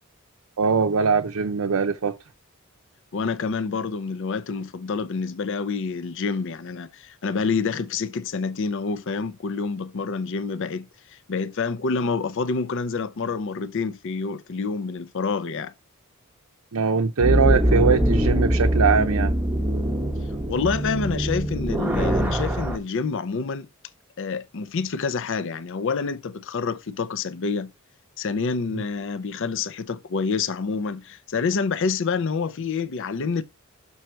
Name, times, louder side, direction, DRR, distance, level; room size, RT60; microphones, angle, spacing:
voice 1, 0.6-2.1 16.7-19.3 28.7-28.8, right 5 dB, 80° right, 0.6 m, -21 dB
voice 2, 3.1-15.7 20.5-23.7 24.2-27.7 28.2-33.4, left 4 dB, 60° left, 0.5 m, -27 dB
sound 1, 17.2-22.8, equal, 10° right, 0.7 m, -23 dB
6.4 x 5.5 x 4.4 m
head